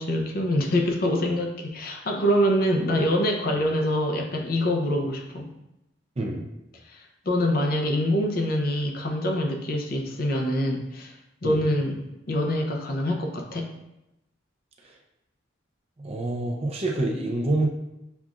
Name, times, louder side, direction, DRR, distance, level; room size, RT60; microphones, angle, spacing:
voice 1, 0.0-5.5 6.9-11.1 11.4-13.7, equal, 50° left, 2 dB, 0.6 m, -25 dB
voice 2, 16.0-17.7, right 2 dB, 30° right, 0 dB, 0.5 m, -27 dB
7.0 x 2.4 x 2.4 m, 0.90 s
head